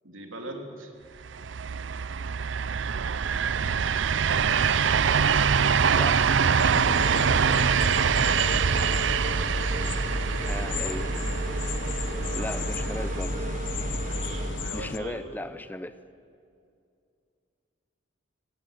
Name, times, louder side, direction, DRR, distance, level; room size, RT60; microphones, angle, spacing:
voice 1, 0.0-0.9 6.9-8.8 12.3-12.6 14.0-15.3, right 2 dB, 85° right, 3 dB, 3.3 m, -42 dB
sound 1, 1.2-13.2, right 6 dB, 65° right, 0.5 m, -25 dB
voice 2, 5.9-6.2 10.5-11.1 12.3-13.4 14.7-16.0, left 1 dB, 10° left, 13 dB, 0.5 m, -36 dB
sound 2, 6.6-15.0, left 4 dB, 65° left, 1.0 m, -36 dB
sound 3, 6.6-14.7, right 1 dB, 40° right, 1.9 m, -32 dB
21.5 x 19.0 x 9.2 m, 2.4 s
head